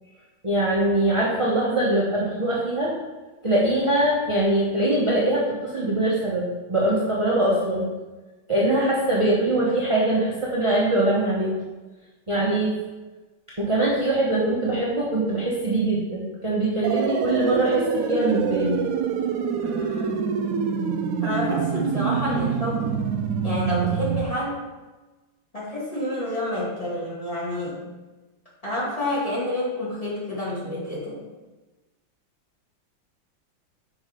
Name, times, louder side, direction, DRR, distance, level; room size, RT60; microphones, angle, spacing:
voice 1, 0.4-3.0 3.4-7.9 8.5-11.5 12.3-12.7 13.6-18.8, right 1 dB, 25° right, -6 dB, 0.8 m, -22 dB
sound 1, 16.8-24.2, right 6 dB, 70° right, 0.8 m, -26 dB
voice 2, 19.6-20.3 21.2-23.0 23.4-24.6 25.5-27.8 28.6-31.2, left 1 dB, 20° left, -7 dB, 2.0 m, -29 dB
6.1 x 4.9 x 5.0 m, 1.2 s
omnidirectional pair, 2.0 m